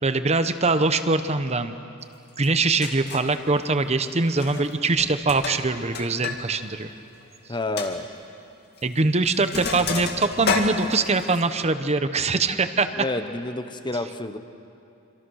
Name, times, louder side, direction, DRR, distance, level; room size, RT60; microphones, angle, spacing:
voice 1, 0.0-1.8 2.4-6.9 8.8-12.9, right 3 dB, 30° right, 10 dB, 0.9 m, -23 dB
Sink (filling or washing), 2.4-2.5 2.8-3.3 4.3-4.7 5.0-6.4 6.7-6.8 7.2-7.3 7.8-7.9 8.8-9.0 9.2-11.4, left 4 dB, 50° left, 2.3 m, -30 dB
voice 2, 7.5-8.1 13.0-14.4, left 2 dB, 20° left, 8 dB, 0.9 m, -29 dB
26.5 x 26.0 x 6.4 m, 2.6 s
head